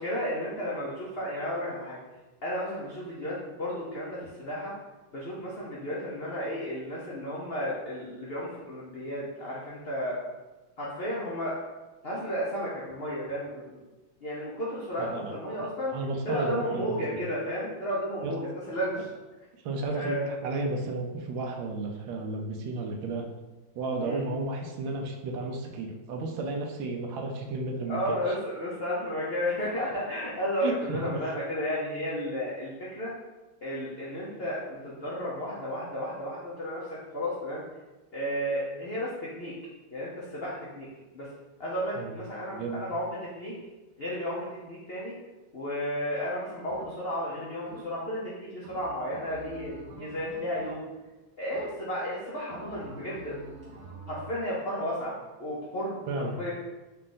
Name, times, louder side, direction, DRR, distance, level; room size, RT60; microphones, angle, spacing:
voice 1, 0.0-2.0 2.4-4.7 5.1-10.2 10.8-11.6 12.0-13.8 14.2-15.9 16.2-19.1 19.9-20.4 24.0-24.2 27.9-33.1 33.6-37.6 38.1-39.6 39.9-40.9 41.1-41.3 41.6-43.5 44.0-45.1 45.5-50.8 51.4-53.4 54.1-56.5, equal, 75° left, -6 dB, 0.5 m, -33 dB
voice 2, 15.0-15.3 15.6-17.0 18.2-18.3 19.6-23.3 23.8-28.0 28.3-28.4 30.6-31.3 41.9-42.2 42.5-42.8 56.1-56.5, right 3 dB, 85° right, 2 dB, 1.3 m, -33 dB
sound 1, 46.7-47.2 47.7-48.2 48.6-51.1 51.5-52.1 52.5-54.4, right 2 dB, 70° right, 0.8 m, -47 dB
4.2 x 2.5 x 3.8 m, 1.1 s
omnidirectional pair, 2.1 m